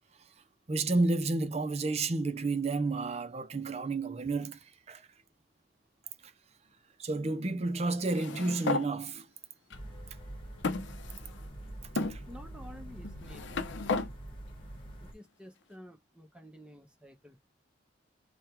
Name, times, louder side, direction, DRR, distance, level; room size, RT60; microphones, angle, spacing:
voice 1, 0.7-5.1 6.2-6.3 7.0-9.3 11.9-12.2, right 3 dB, 35° right, 0.5 m, -31 dB
sound 1, 8.0-8.9 9.7-9.8 10.6-11.5 12.0-12.2 13.0-14.1, left 3 dB, 75° left, 0.6 m, -33 dB
sound 2, 9.7-15.1, right 1 dB, 30° left, 1.3 m, -45 dB
voice 2, 12.3-13.8 15.0-17.4, equal, 5° right, 0.8 m, -51 dB
3.6 x 2.2 x 4.3 m
head